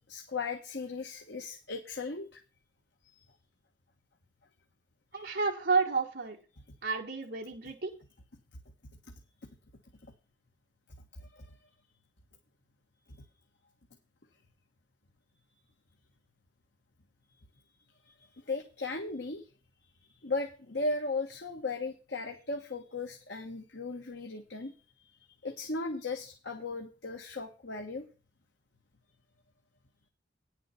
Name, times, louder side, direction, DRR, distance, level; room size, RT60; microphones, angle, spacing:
voice 1, 0.1-2.4 3.1-3.2 5.1-5.3 10.0-10.1 11.1-11.6 18.0-19.4 20.0-24.7 25.4-28.0, left 3 dB, 65° left, 3 dB, 1.5 m, -37 dB
voice 2, 5.1-6.4 6.8-7.9, right 4 dB, 60° right, -1 dB, 2.0 m, -30 dB
10.5 x 7.4 x 5.5 m, 0.34 s
head